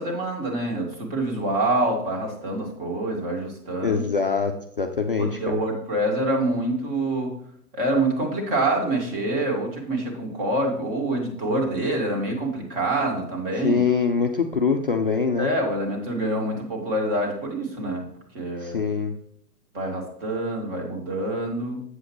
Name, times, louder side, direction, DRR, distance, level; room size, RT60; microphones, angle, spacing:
voice 1, 0.0-4.0 5.2-7.3 7.7-13.8 15.4-18.1 18.3-18.8 19.7-21.8, right 1 dB, 35° right, 1 dB, 2.2 m, -26 dB
voice 2, 3.8-5.6 13.6-15.5 18.6-19.2, left 5 dB, 35° left, 3 dB, 0.4 m, -24 dB
8.0 x 7.6 x 3.1 m, 0.70 s
figure-of-eight pair, 120°, 50 cm